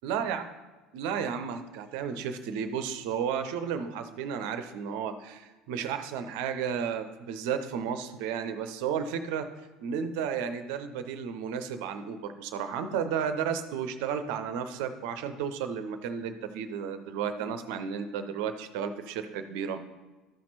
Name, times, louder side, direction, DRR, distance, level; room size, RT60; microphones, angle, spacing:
voice 1, 0.0-0.5 0.9-9.5 9.8-19.8, right 7 dB, 60° right, 9 dB, 0.6 m, -33 dB
13.5 x 5.9 x 4.2 m, 1.2 s
figure-of-eight pair, 65°, 0 cm